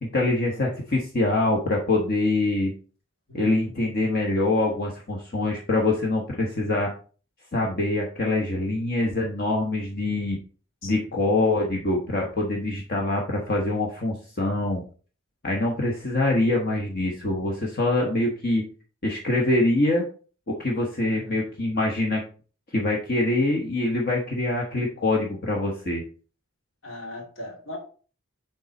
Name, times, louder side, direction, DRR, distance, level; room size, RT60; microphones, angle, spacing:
voice 1, 0.0-2.7 3.3-6.9 7.5-10.4 10.8-14.8 15.4-18.6 19.0-20.0 20.5-22.2 22.7-26.0, left 2 dB, 50° left, -1 dB, 1.1 m, -24 dB
voice 2, 3.3-4.0 10.8-11.2 21.1-21.5 26.8-27.8, left 2 dB, 75° left, -1 dB, 2.5 m, -40 dB
6.8 x 4.0 x 4.1 m, 0.39 s
head